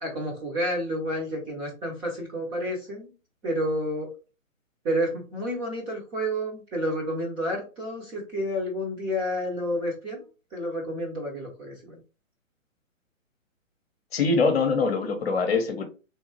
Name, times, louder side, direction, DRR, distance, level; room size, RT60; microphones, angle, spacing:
voice 1, 0.0-3.1 3.4-4.1 4.8-10.2 10.5-12.0, equal, 15° right, 0.9 m, -30 dB
voice 2, 14.1-15.9, left 4 dB, 50° left, 0.9 m, -23 dB
3.4 x 2.8 x 2.8 m
figure-of-eight pair, 135°, 40 cm